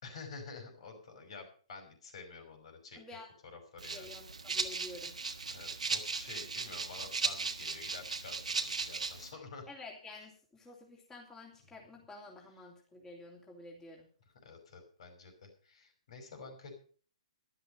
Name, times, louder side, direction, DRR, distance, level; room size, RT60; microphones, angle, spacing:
voice 1, 0.0-3.0 3.4-4.1 5.5-9.6 11.7-11.8 14.4-16.7, left 4 dB, 60° left, 6 dB, 5.5 m, -49 dB
voice 2, 2.9-3.3 3.9-5.2 9.7-14.1, left 2 dB, 15° left, -1 dB, 3.0 m, -50 dB
Rattle (instrument), 3.8-9.3, right 4 dB, 90° right, 1.6 m, -37 dB
12.5 x 11.5 x 5.5 m, 0.43 s
hypercardioid pair, 135°, 4 cm